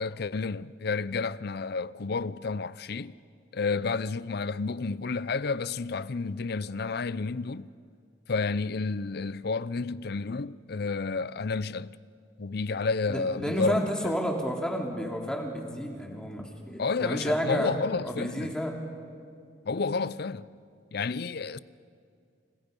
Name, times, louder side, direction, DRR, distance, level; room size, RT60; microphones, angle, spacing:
voice 1, 0.0-3.1 3.5-7.7 8.3-12.0 12.4-13.9 16.8-18.5 19.7-20.5 20.9-21.6, left 4 dB, 55° left, 0.6 m, -30 dB
voice 2, 13.1-17.7 18.0-18.8, equal, 5° left, 3.1 m, -31 dB
30.0 x 29.5 x 5.4 m
head